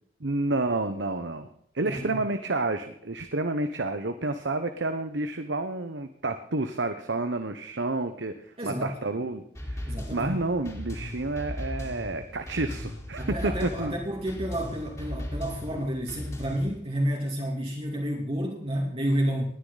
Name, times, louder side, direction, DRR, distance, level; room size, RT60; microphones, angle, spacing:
voice 1, 0.2-1.5 1.7-13.9, right 2 dB, 65° right, 8 dB, 1.1 m, -30 dB
voice 2, 1.8-2.2 8.6-9.0 9.9-10.3 13.2-19.5, equal, 30° right, -1 dB, 2.6 m, -30 dB
sound 1, 9.6-16.8, left 1 dB, 15° left, 3.7 m, -37 dB
20.0 x 9.8 x 4.1 m, 0.66 s
head